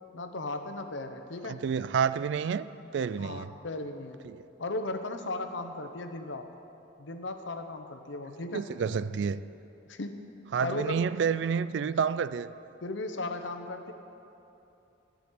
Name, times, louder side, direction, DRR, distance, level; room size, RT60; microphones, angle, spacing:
voice 1, 0.1-1.6 3.2-4.2 4.6-6.5 7.0-8.6 9.9-10.2 10.6-11.1 12.8-13.9, left 2 dB, 70° left, 0.8 m, -36 dB
voice 2, 1.5-2.7 2.9-3.5 4.2-4.4 8.5-9.4 10.5-12.5, right 6 dB, 65° right, 0.3 m, -29 dB
14.0 x 5.1 x 9.3 m
head